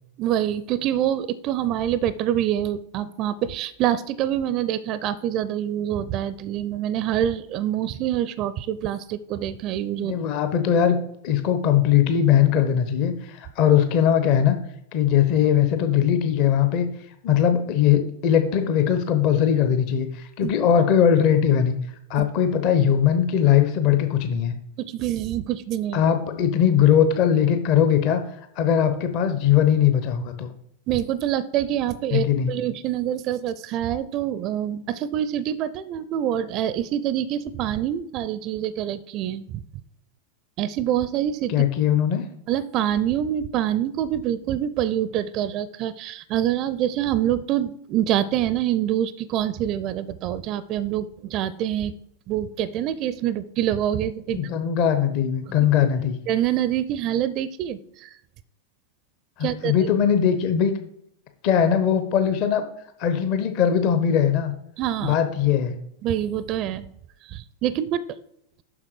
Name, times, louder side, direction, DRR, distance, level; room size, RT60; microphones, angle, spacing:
voice 1, 0.2-10.2 20.4-20.5 22.2-22.3 24.9-26.0 30.9-39.4 40.6-41.7 42.5-52.0 52.3-54.4 55.5-55.6 56.3-58.1 59.4-59.7 64.8-65.2 66.0-66.9 67.3-68.0, right 11 dB, 40° right, 17 dB, 0.4 m, -26 dB
voice 2, 10.0-11.0 11.2-14.6 14.9-16.9 17.2-21.8 22.1-24.5 25.9-28.2 28.6-30.5 32.1-32.5 41.5-42.2 54.3-56.2 59.4-60.7 61.4-62.6 63.0-64.5 65.0-65.7, left 9 dB, 45° left, 8 dB, 0.9 m, -20 dB
7.3 x 6.0 x 4.9 m, 0.75 s
figure-of-eight pair, 90°, 0 cm